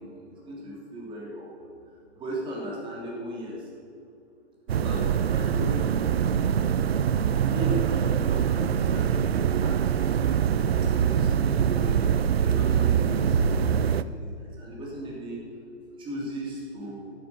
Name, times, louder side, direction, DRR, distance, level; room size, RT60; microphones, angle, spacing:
voice 1, 0.0-1.7 2.1-3.7 4.7-6.0 7.4-12.0 12.4-15.4 16.0-17.1, equal, 15° right, -4 dB, 3.1 m, -37 dB
sound 1, 4.7-14.0, right 8 dB, 65° right, 0.5 m, -24 dB
12.0 x 9.5 x 5.9 m, 2.6 s
figure-of-eight pair, 130°, 34 cm